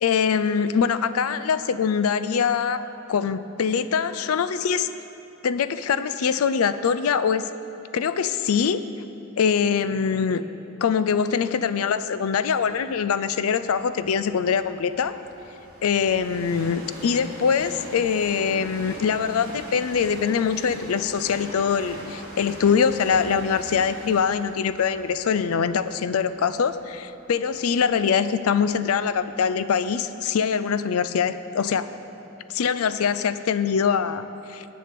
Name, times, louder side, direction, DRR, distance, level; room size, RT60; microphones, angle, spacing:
voice 1, 0.0-2.8 3.1-4.9 5.4-7.5 7.9-8.8 9.4-10.4 10.8-15.2 15.8-31.9 32.5-34.2 34.5-34.7, left 6 dB, 80° left, 13 dB, 0.4 m, -23 dB
Train, 12.8-28.7 29.3-29.4, right 1 dB, 45° right, 2.4 m, -42 dB
8.4 x 7.5 x 6.8 m, 2.8 s
head